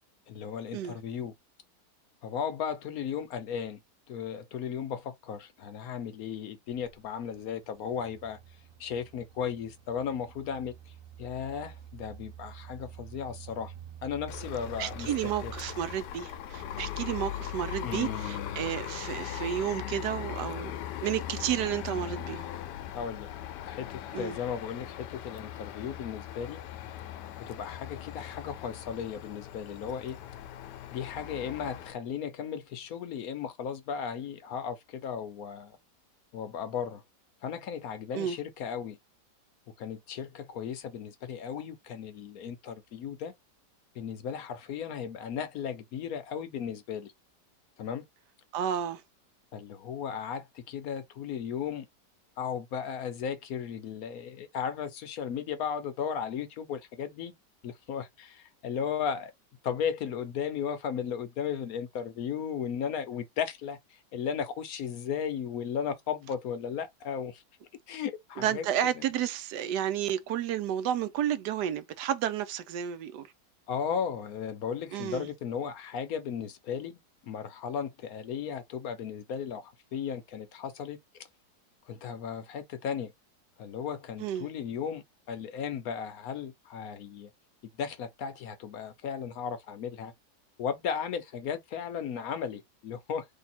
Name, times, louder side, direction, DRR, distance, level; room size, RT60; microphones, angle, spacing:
voice 1, 0.3-1.3 2.2-3.8 4.1-8.4 8.8-10.7 11.2-13.7 14.0-15.1 15.4-15.5 17.8-18.6 22.9-23.3 23.7-26.6 27.5-30.2 30.9-35.8 36.3-37.0 37.4-39.0 39.8-43.3 44.0-47.1 47.8-48.0 49.5-51.9 52.4-57.3 57.6-59.3 59.6-67.4 67.9-68.7 73.7-81.0 81.9-83.1 83.6-87.3 87.8-90.1 90.6-93.2, left 7 dB, 65° left, 1.0 m, -35 dB
sound 1, 6.7-18.2, right 9 dB, 60° right, 1.1 m, -48 dB
sound 2, 14.3-31.9, left 11 dB, 90° left, 1.2 m, -40 dB
voice 2, 14.8-20.7 21.0-22.4 24.1-24.4 38.1-38.4 48.5-49.0 68.4-73.3 74.9-75.3 84.2-84.5, right 10 dB, 80° right, 1.2 m, -31 dB
3.5 x 2.7 x 4.2 m
omnidirectional pair, 1.8 m